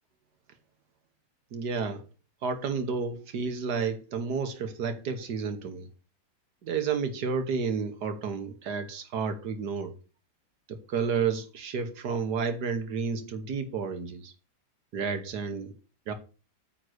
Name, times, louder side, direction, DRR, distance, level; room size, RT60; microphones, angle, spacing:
voice 1, 1.5-2.0 2.4-5.9 6.6-9.9 10.7-14.3 14.9-15.7 16.1-16.2, right 5 dB, 75° right, 1.7 m, -31 dB
9.3 x 3.9 x 6.2 m
omnidirectional pair, 1.8 m